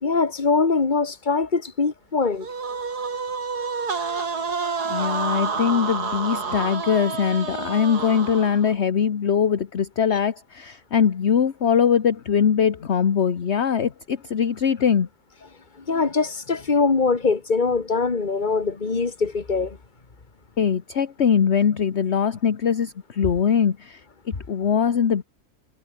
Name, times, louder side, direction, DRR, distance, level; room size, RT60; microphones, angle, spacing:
voice 1, 0.0-2.5 15.9-19.8, left 4 dB, 30° left, 1.9 m, -22 dB
sound 1, 2.4-8.7, right 5 dB, 80° right, 3.2 m, -29 dB
voice 2, 4.9-15.1 20.6-24.0 24.3-25.2, left 7 dB, 45° left, 1.3 m, -22 dB
omnidirectional pair, 1.7 m